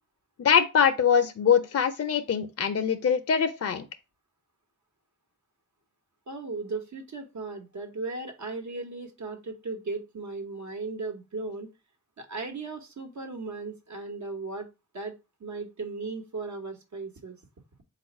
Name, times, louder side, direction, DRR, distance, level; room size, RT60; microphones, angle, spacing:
voice 1, 0.4-3.9, left 7 dB, 50° left, 0.6 m, -23 dB
voice 2, 6.3-11.7 12.2-14.7 14.9-15.1 15.4-17.4, right 3 dB, 60° right, 1.1 m, -36 dB
4.0 x 2.4 x 4.3 m
cardioid pair, 40°, 32 cm